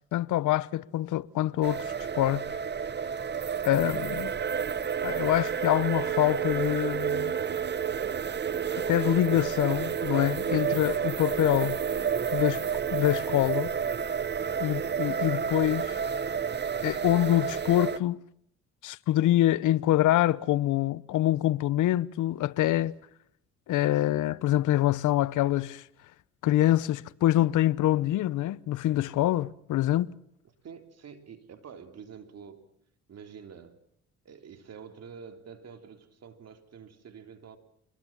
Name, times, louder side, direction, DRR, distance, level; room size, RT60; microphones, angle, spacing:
voice 1, 0.1-2.4 3.6-4.3 5.0-7.3 8.9-11.8 12.3-12.6 12.9-13.7 14.6-16.0 16.8-18.2 18.8-22.9 23.7-25.8 26.4-30.1, left 14 dB, 80° left, 0.9 m, -25 dB
sound 1, 1.6-18.0, right 7 dB, 35° right, 0.9 m, -30 dB
voice 2, 30.6-32.7 33.1-33.8 34.2-37.6, right 6 dB, 55° right, 3.3 m, -47 dB
25.0 x 21.0 x 7.3 m
cardioid pair, 90°, 30 cm